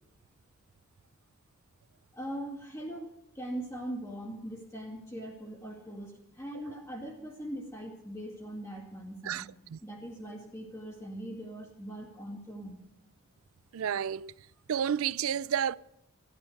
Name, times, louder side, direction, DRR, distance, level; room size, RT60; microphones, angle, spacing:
voice 1, 2.1-9.5 9.8-12.8, right 1 dB, 15° left, 2.3 m, -41 dB
voice 2, 13.7-14.3 14.7-15.8, right 8 dB, 85° right, 0.4 m, -30 dB
13.5 x 12.0 x 6.4 m
head